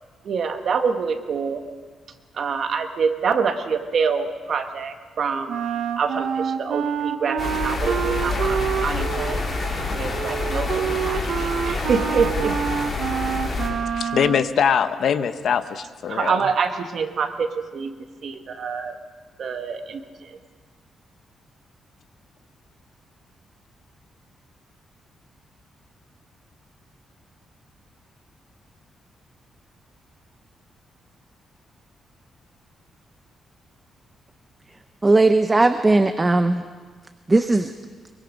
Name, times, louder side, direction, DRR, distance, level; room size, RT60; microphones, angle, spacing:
voice 1, 0.2-1.6 2.3-5.6 6.0-9.4 9.9-12.6 16.1-17.9 18.2-19.0 19.4-20.4, right 5 dB, 50° right, 6 dB, 1.5 m, -26 dB
Wind instrument woodwind instrument, 5.5-14.5, right 8 dB, 70° right, 0.8 m, -27 dB
sound 1, 7.4-13.7, left 3 dB, 35° left, 3.7 m, -27 dB
voice 2, 13.9-16.5, left 7 dB, 60° left, 11 dB, 0.9 m, -22 dB
voice 3, 35.0-36.6 37.3-37.7, right 2 dB, 15° right, 9 dB, 0.6 m, -17 dB
24.0 x 23.0 x 5.2 m, 1.5 s
cardioid pair, 155°, 0 cm